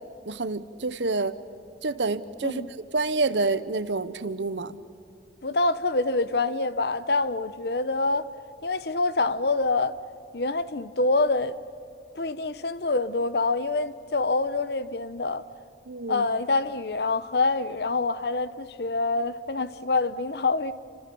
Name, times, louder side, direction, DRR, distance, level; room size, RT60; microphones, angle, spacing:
voice 1, 0.3-1.3 1.8-2.6 2.9-4.7 15.9-16.2, right 3 dB, 85° right, 1.1 m, -27 dB
voice 2, 5.4-8.3 8.6-10.0 10.3-11.6 12.1-15.4 16.1-20.7, left 3 dB, 65° left, 0.9 m, -26 dB
29.0 x 26.0 x 7.1 m
head